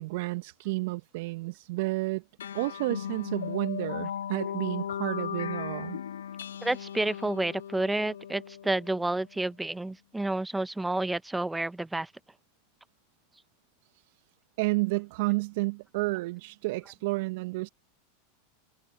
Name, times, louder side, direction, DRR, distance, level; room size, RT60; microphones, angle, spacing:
voice 1, 0.0-2.2 2.5-6.0 14.6-17.7, right 23 dB, 60° right, 1.2 m, -31 dB
sound 1, 2.4-9.3, left 9 dB, 80° left, 0.3 m, -37 dB
voice 2, 6.6-12.1, right 2 dB, 5° right, 1.1 m, -30 dB
hypercardioid pair, 95°, 0 cm